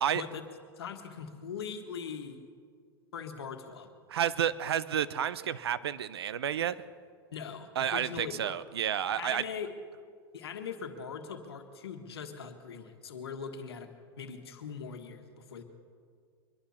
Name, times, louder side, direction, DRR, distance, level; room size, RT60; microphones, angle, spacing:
voice 1, 0.8-2.4 3.1-3.9 7.3-8.6 9.2-9.7 10.3-13.9 14.1-15.6, left 6 dB, 85° left, 6 dB, 1.6 m, -41 dB
voice 2, 4.1-6.7 7.8-9.4, right 9 dB, 90° right, 16 dB, 0.6 m, -30 dB
23.0 x 11.5 x 4.3 m, 2.1 s
hypercardioid pair, 110°, 13 cm